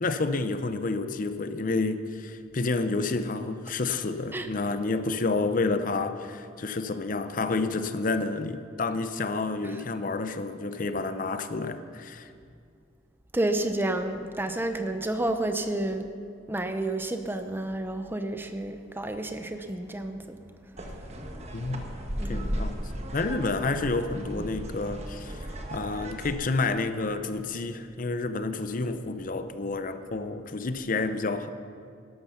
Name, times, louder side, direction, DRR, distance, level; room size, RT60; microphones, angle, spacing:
voice 1, 0.0-12.3 21.5-21.9 22.3-22.8 23.1-31.5, left 3 dB, 45° left, 10 dB, 0.6 m, -29 dB
voice 2, 13.3-16.1 16.5-20.4 22.2-22.5, right 1 dB, 10° right, 7 dB, 0.6 m, -30 dB
sound 1, 20.8-26.3, equal, 35° right, 1.2 m, -36 dB
12.5 x 12.0 x 5.8 m, 2.3 s
head